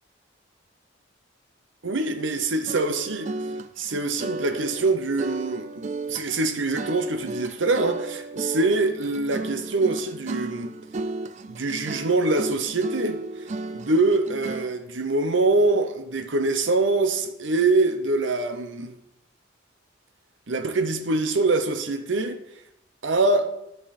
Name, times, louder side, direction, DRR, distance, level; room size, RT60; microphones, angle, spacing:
voice 1, 1.8-3.3 3.8-10.7 11.4-18.9 20.5-22.4 23.0-23.5, right 3 dB, 75° right, 0.9 m, -24 dB
sound 1, 2.7-14.8, right 2 dB, 40° right, 0.4 m, -34 dB
13.0 x 5.4 x 4.2 m
head